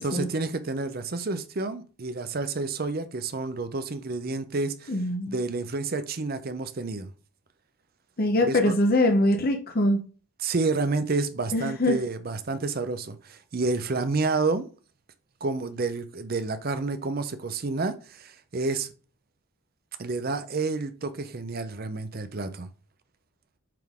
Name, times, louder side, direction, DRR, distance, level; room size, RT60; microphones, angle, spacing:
voice 1, 0.0-4.9 5.3-7.1 8.4-8.7 10.4-14.7 15.4-18.9 20.0-22.7, right 3 dB, 45° right, 0.6 m, -29 dB
voice 2, 4.9-5.3 8.2-10.0 11.5-12.0, left 1 dB, 45° left, 0.7 m, -23 dB
7.6 x 3.8 x 3.6 m
head